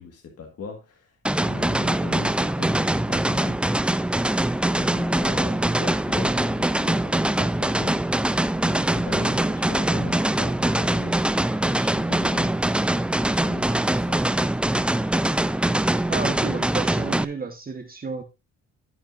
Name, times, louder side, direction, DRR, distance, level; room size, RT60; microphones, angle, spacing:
voice 1, 0.0-3.7 4.6-8.1 8.6-12.6 13.2-14.2, left 5 dB, 55° left, 1.8 m, -40 dB
sound 1, 1.3-17.3, right 1 dB, 5° right, 0.4 m, -23 dB
voice 2, 16.1-18.2, right 4 dB, 30° right, 1.2 m, -31 dB
15.0 x 5.9 x 2.6 m
cardioid pair, 90°, 30 cm